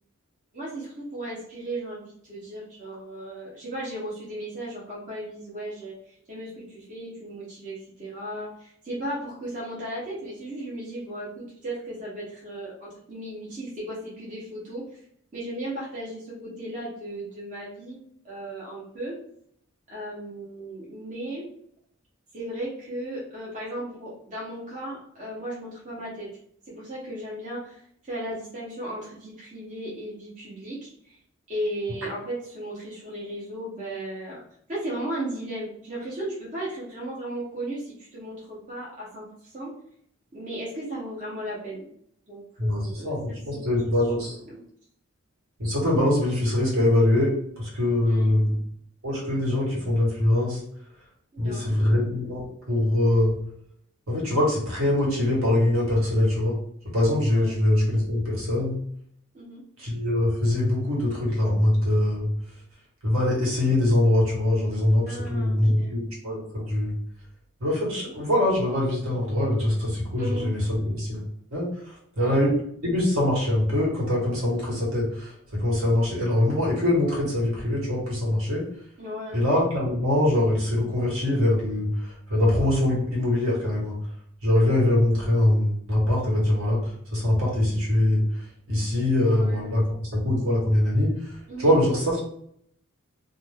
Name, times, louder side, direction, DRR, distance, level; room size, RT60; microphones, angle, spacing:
voice 1, 0.5-15.0 15.3-18.0 18.2-19.2 19.9-21.5 22.3-26.3 26.7-31.2 31.5-34.4 34.7-39.7 40.3-41.9 42.3-44.6 48.0-48.3 51.3-51.9 57.3-57.6 59.3-59.6 65.1-66.0 70.1-70.5 72.2-72.4 79.0-79.4 89.2-89.8 91.5-91.8, right 1 dB, 35° right, -7 dB, 0.8 m, -36 dB
voice 2, 42.6-44.4 45.6-48.4 49.0-50.6 51.4-53.4 54.1-56.6 56.9-58.8 59.8-62.3 63.0-66.9 67.6-71.2 71.5-72.5 72.8-78.6 79.3-83.9 84.4-92.2, left 1 dB, 75° right, -4 dB, 1.3 m, -23 dB
2.5 x 2.2 x 3.3 m, 0.67 s
head